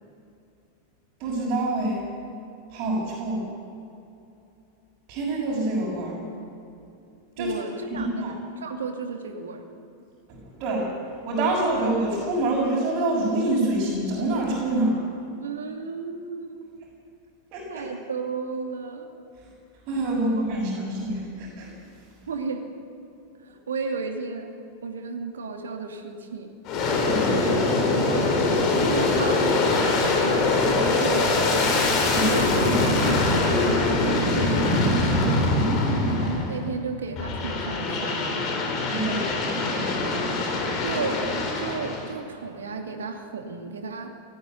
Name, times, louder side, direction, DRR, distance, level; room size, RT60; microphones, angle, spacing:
voice 1, 1.2-2.0 2.7-3.4 5.1-6.2 7.4-7.5 7.9-8.3 10.6-10.9 11.2-15.0 17.5-17.8 19.9-21.7 27.0-27.4 32.1-32.3 35.4-36.3 38.9-40.4, right 2 dB, 40° right, -6 dB, 6.3 m, -26 dB
voice 2, 7.4-9.6 15.4-16.7 17.7-19.1 20.2-20.8 22.3-22.6 23.4-24.5 24.8-26.6 27.3-31.7 32.1-35.2 36.2-38.5 40.8-41.2 41.6-44.1, right 4 dB, 65° right, 4 dB, 2.5 m, -34 dB
Aircraft, 26.6-36.7 37.2-42.1, left 2 dB, 40° left, 4.2 m, -23 dB
19.5 x 14.5 x 9.4 m, 2.7 s
figure-of-eight pair, 90°, 0 cm